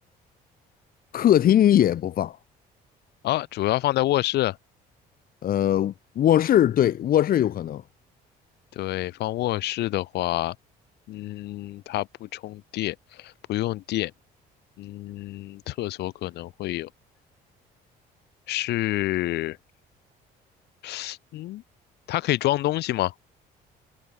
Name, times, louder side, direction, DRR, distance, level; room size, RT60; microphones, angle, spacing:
voice 1, 1.1-2.4 5.4-7.8, left 11 dB, 60° left, 4.9 m, -20 dB
voice 2, 3.2-4.6 8.8-10.5 11.1-14.1 14.8-16.9 18.5-19.6 20.8-21.6 22.1-23.1, left 16 dB, 80° left, 7.6 m, -27 dB
cardioid pair, 110°, 17 cm